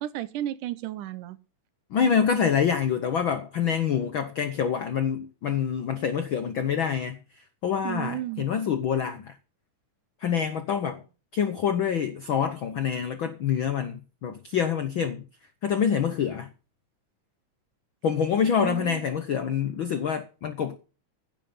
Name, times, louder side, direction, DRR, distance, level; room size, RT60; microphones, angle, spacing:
voice 1, 0.0-1.4 7.8-8.5 18.6-19.0, right 14 dB, 80° right, 2.3 m, -33 dB
voice 2, 1.9-9.4 10.2-11.0 11.3-15.2 15.6-16.5 18.0-20.8, left 7 dB, 75° left, 1.1 m, -26 dB
16.0 x 7.5 x 5.5 m
omnidirectional pair, 3.7 m